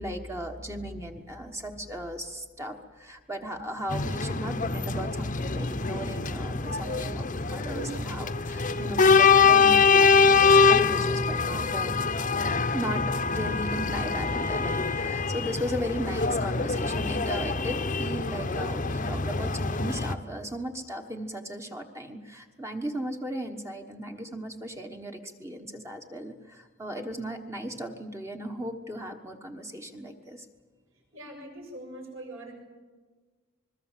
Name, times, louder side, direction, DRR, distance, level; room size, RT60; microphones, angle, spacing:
voice 1, 0.0-12.1 12.7-30.5, equal, 15° right, 4 dB, 1.3 m, -36 dB
sound 1, 1.1-1.9 2.2-2.3 2.6-2.9 3.1-3.2 3.4-3.7 4.3-5.4 6.0-6.1 6.4-6.5 6.8-8.0 8.8-9.8, right 3 dB, 50° right, 7.2 m, -47 dB
sound 2, 3.9-20.1, left 5 dB, 35° left, 0.9 m, -24 dB
voice 2, 31.1-32.6, right 1 dB, 70° right, 1 dB, 7.2 m, -42 dB
26.0 x 21.5 x 7.5 m, 1.4 s
head